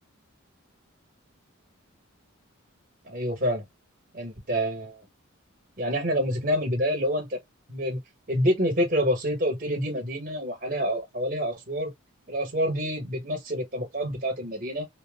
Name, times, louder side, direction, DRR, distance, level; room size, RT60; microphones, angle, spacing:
voice 1, 3.0-3.6 4.1-5.1 5.8-7.4 7.7-8.0 8.3-11.9 12.3-14.9, equal, 40° right, 1.3 m, -27 dB
2.9 x 2.1 x 3.5 m
head